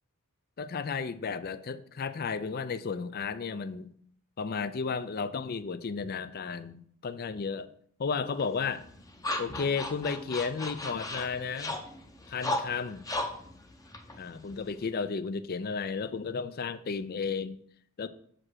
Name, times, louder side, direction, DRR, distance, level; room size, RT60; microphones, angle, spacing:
voice 1, 0.6-3.9 4.4-7.7 8.0-8.8 9.4-11.7 12.3-13.0 14.2-17.6 18.0-18.1, left 5 dB, 45° left, 14 dB, 0.4 m, -33 dB
sound 1, 8.4-14.9, left 1 dB, 15° left, 0.7 m, -37 dB
7.3 x 5.1 x 6.2 m, 0.63 s
head